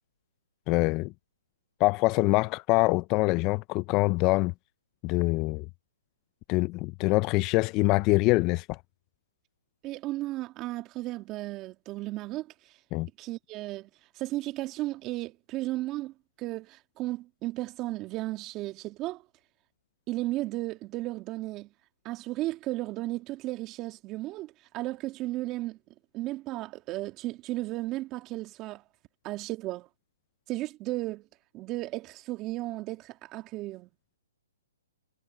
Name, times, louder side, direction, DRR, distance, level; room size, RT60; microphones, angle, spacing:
voice 1, 0.7-1.1 1.8-4.5 5.0-5.6 6.5-8.8 12.9-13.1, left 23 dB, 30° left, 0.5 m, -24 dB
voice 2, 9.8-12.5 13.2-13.9 14.2-19.2 20.1-21.7 22.0-25.8 26.1-28.8 29.2-29.9 30.5-31.3 31.5-33.9, right 17 dB, 25° right, 2.5 m, -34 dB
hypercardioid pair, 145°, 0 cm